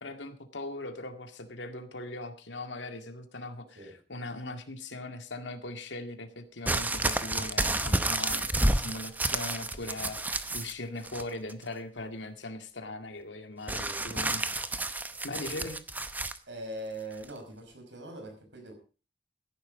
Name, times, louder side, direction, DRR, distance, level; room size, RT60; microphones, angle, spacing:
voice 1, 0.0-14.5 15.2-15.8, left 2 dB, 90° left, 7 dB, 2.1 m, -40 dB
sound 1, 6.7-10.7 11.0-11.6 13.7-16.4 17.2-17.3, right 2 dB, 10° right, 0.8 m, -30 dB
voice 2, 16.5-18.7, right 1 dB, 85° right, 4 dB, 5.8 m, -42 dB
15.0 x 11.0 x 5.2 m, 0.35 s
head